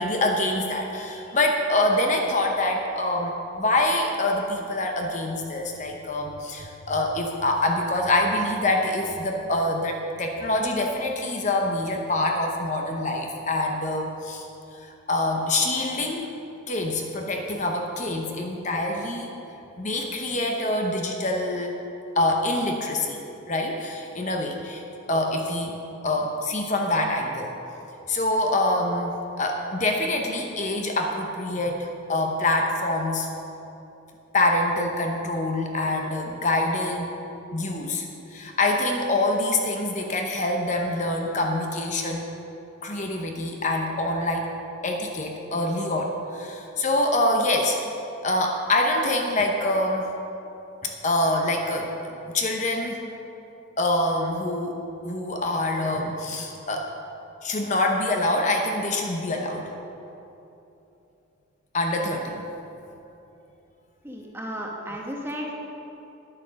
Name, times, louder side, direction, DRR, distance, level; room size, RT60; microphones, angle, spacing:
voice 1, 0.0-14.5 14.8-16.3 16.7-19.4 19.8-21.7 22.2-23.2 23.5-24.8 25.1-25.8 26.0-27.5 28.1-33.3 34.3-37.1 37.5-42.3 42.8-44.4 44.8-47.8 48.2-50.1 50.8-53.0 53.8-56.9 57.4-59.7 61.7-62.4, left 1 dB, 35° left, 2 dB, 0.8 m, -25 dB
voice 2, 64.0-65.5, equal, 10° right, -1 dB, 1.1 m, -34 dB
10.0 x 8.8 x 6.3 m, 3.0 s
head